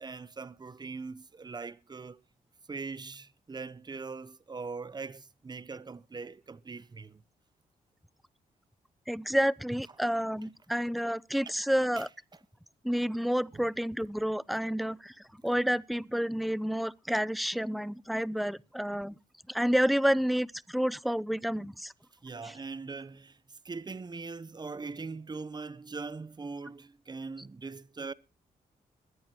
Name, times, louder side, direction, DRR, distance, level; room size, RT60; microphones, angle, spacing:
voice 1, 0.0-2.2 2.7-7.2 11.4-11.6 12.0-12.1 13.5-13.6 22.2-28.1, right 4 dB, 30° right, 0.8 m, -41 dB
voice 2, 9.1-12.1 12.8-15.1 15.4-19.2 19.5-21.9 22.4-22.6, equal, ahead, 0.5 m, -29 dB
21.5 x 10.0 x 2.9 m
cardioid pair, 75°, 15 cm